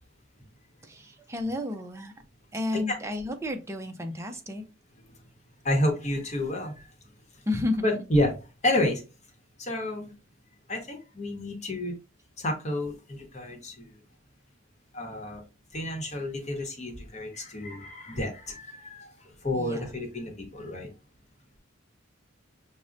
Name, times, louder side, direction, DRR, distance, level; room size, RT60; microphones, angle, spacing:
voice 1, 0.8-2.1 2.5-4.6 7.5-8.1 19.5-19.9, left 2 dB, 15° right, 5 dB, 0.4 m, -32 dB
voice 2, 5.6-6.9 7.3-7.5 7.8-8.3 8.6-9.0 9.6-10.1 10.7-11.9 12.4-14.0 14.9-15.4 15.7-20.9, left 1 dB, 35° left, 2 dB, 0.9 m, -30 dB
6.0 x 2.1 x 2.5 m, 0.31 s
head